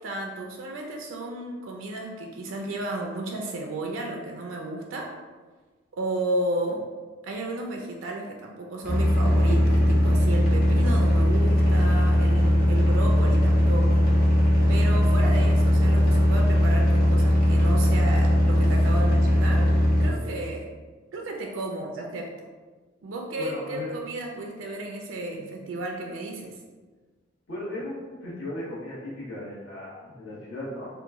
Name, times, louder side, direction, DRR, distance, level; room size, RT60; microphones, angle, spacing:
voice 1, 0.0-5.1 5.9-6.8 7.2-14.0 14.7-20.7 21.1-22.3 23.0-26.6, right 1 dB, 70° right, 1 dB, 0.4 m, -33 dB
sound 1, 8.8-20.1, equal, 50° left, 0.8 m, -20 dB
voice 2, 23.4-23.9 25.3-25.6 27.5-30.9, left 1 dB, 80° left, -8 dB, 1.1 m, -36 dB
2.9 x 2.2 x 3.4 m, 1.3 s
head